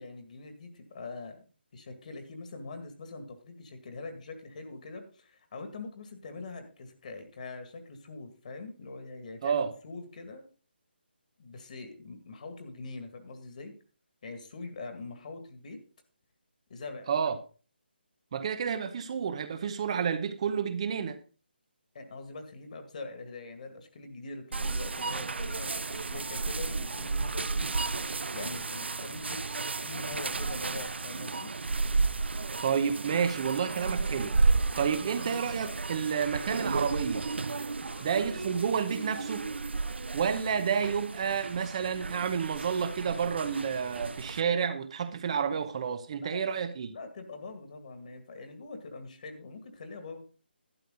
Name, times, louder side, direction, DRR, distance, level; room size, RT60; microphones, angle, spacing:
voice 1, 0.0-1.4 1.7-10.5 11.4-13.7 14.2-15.8 16.7-17.1 21.9-28.0 28.3-29.4 29.8-31.5 37.9-38.1 46.2-46.6 46.9-50.2, left 3 dB, 45° left, 2.1 m, -43 dB
voice 2, 9.4-9.7 17.1-17.4 18.3-21.2 32.6-34.4 34.8-37.3 38.0-39.5 40.1-46.9, right 7 dB, 35° right, 0.8 m, -30 dB
sound 1, 24.5-44.4, right 3 dB, 85° right, 0.5 m, -33 dB
12.0 x 9.6 x 3.9 m
hypercardioid pair, 165°, 6 cm